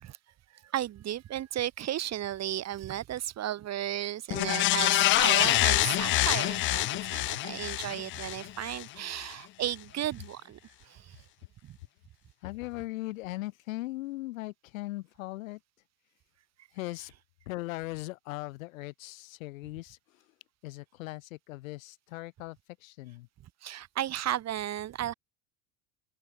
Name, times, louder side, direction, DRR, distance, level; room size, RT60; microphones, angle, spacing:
voice 1, 0.5-11.2 11.6-11.8 23.6-25.1, right 12 dB, 40° right, 1.5 m, -34 dB
sound 1, 4.3-8.8 9.2-9.3, left 17 dB, 30° left, 0.4 m, -26 dB
voice 2, 12.4-15.6 16.7-17.1 17.5-20.2 20.6-23.3, left 19 dB, 70° left, 2.3 m, -39 dB
open air
hypercardioid pair, 75°, 41 cm